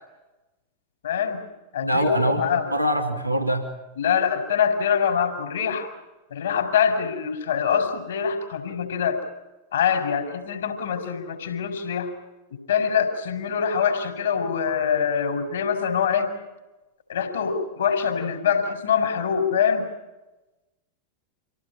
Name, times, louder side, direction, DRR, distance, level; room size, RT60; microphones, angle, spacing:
voice 1, 1.0-1.5 1.7-2.7 4.0-5.9 6.3-9.2 9.7-12.1 12.7-16.3 17.1-19.9, left 7 dB, 65° left, 5 dB, 4.8 m, -24 dB
voice 2, 1.8-3.7, right 1 dB, 90° right, 2 dB, 2.9 m, -24 dB
26.5 x 17.5 x 8.8 m, 1.1 s
figure-of-eight pair, 90°, 0 cm